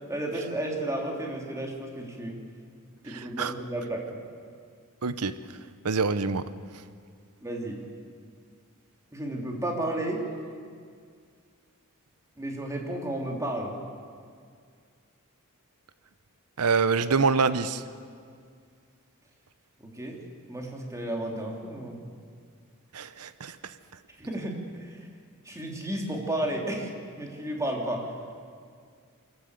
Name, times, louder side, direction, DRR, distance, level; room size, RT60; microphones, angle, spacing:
voice 1, 0.1-2.4 3.0-4.0 7.4-7.8 9.1-10.2 12.4-13.7 19.8-20.2 20.5-22.0 24.2-25.0 25.4-26.9 27.2-28.1, right 1 dB, 15° right, 0 dB, 3.1 m, -32 dB
voice 2, 3.1-3.5 5.0-5.3 5.8-6.4 16.6-17.8 22.9-23.6, right 4 dB, 90° right, 13 dB, 0.9 m, -25 dB
24.0 x 14.0 x 8.2 m, 2.1 s
head